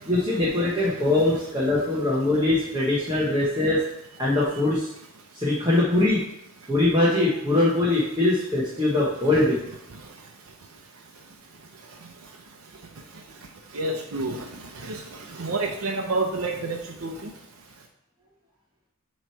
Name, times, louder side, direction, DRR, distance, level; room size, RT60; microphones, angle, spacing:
voice 1, 0.1-3.8 4.2-4.9 5.3-6.2 6.7-9.6, left 2 dB, 20° right, -7 dB, 1.2 m, -22 dB
voice 2, 13.7-14.4 14.8-15.0 15.4-17.1, right 2 dB, 80° right, 0 dB, 0.7 m, -28 dB
7.6 x 3.2 x 4.6 m, 0.78 s
head